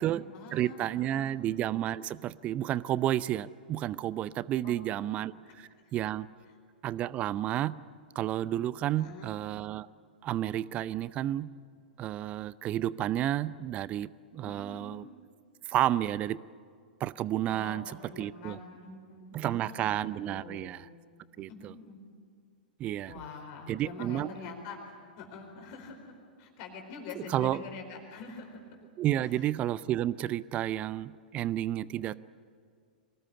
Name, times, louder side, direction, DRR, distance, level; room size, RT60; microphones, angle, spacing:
voice 1, 0.0-1.4 4.6-4.7 5.1-6.0 9.0-9.4 14.4-15.0 17.5-20.8 21.5-22.0 23.1-26.1 26.4-28.6 29.2-29.4, left 4 dB, 40° left, 3 dB, 4.5 m, -46 dB
voice 2, 0.5-6.3 6.8-7.8 8.1-9.9 10.2-11.5 12.0-15.0 15.7-16.4 17.0-17.8 18.2-18.6 19.3-20.8 21.4-21.7 22.8-23.1 23.7-24.3 27.3-27.6 29.0-32.2, right 12 dB, 25° right, 20 dB, 0.5 m, -31 dB
24.0 x 19.5 x 9.7 m, 2.1 s
figure-of-eight pair, 100°, 5 cm